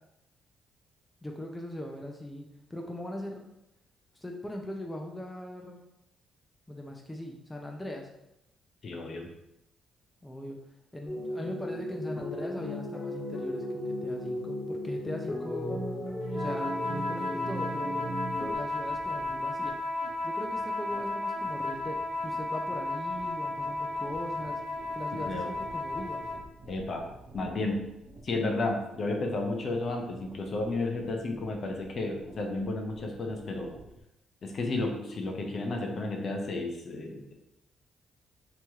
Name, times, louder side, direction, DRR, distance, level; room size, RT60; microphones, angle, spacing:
voice 1, 1.2-3.4 4.1-5.8 6.7-8.1 10.2-10.6 10.9-15.8 16.3-18.2 18.5-19.8 20.2-24.6 24.9-26.2, left 1 dB, 10° left, 1 dB, 0.5 m, -40 dB
voice 2, 8.8-9.3 25.3-25.5 26.7-27.1 27.3-27.9 28.2-33.7 34.4-37.3, left 2 dB, 50° left, 2 dB, 0.7 m, -32 dB
sound 1, 11.1-18.6, left 1 dB, 35° left, 1.1 m, -35 dB
sound 2, 16.3-26.5, left 2 dB, 80° right, 1.0 m, -34 dB
sound 3, 18.2-34.0, right 2 dB, 50° right, 0.7 m, -53 dB
3.1 x 2.9 x 3.5 m, 0.86 s
cardioid pair, 90°, 0 cm